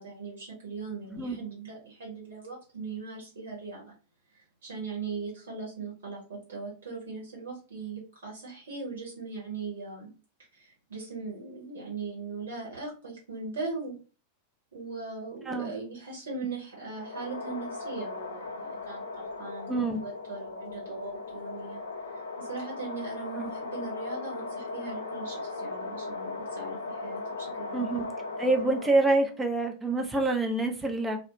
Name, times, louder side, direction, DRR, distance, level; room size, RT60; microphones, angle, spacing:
voice 1, 0.0-3.9 4.3-10.1 10.5-13.9 14.7-21.8 22.1-27.9, right 4 dB, 65° right, -2 dB, 0.9 m, -39 dB
sound 1, 16.9-29.3, left 3 dB, 70° left, 0.4 m, -38 dB
voice 2, 19.7-20.0 23.4-23.5 27.7-28.1 28.4-31.2, right 2 dB, 10° right, 4 dB, 0.5 m, -26 dB
2.4 x 2.0 x 2.8 m, 0.34 s
figure-of-eight pair, 90°, 0 cm